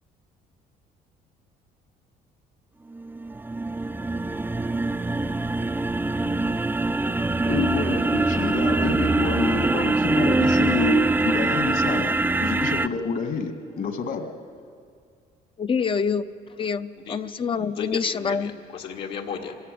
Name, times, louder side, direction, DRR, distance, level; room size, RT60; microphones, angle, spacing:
sound 1, 2.9-12.9, right 2 dB, 10° right, 0.5 m, -23 dB
voice 1, 7.4-14.3, left 5 dB, 55° left, 6 dB, 2.0 m, -28 dB
voice 2, 15.6-16.3 16.6-18.5, left 6 dB, 30° left, 11 dB, 0.6 m, -26 dB
voice 3, 17.7-19.6, left 6 dB, 75° left, 0 dB, 1.9 m, -34 dB
25.0 x 14.0 x 9.3 m, 2.3 s
cardioid pair, 110°, 17 cm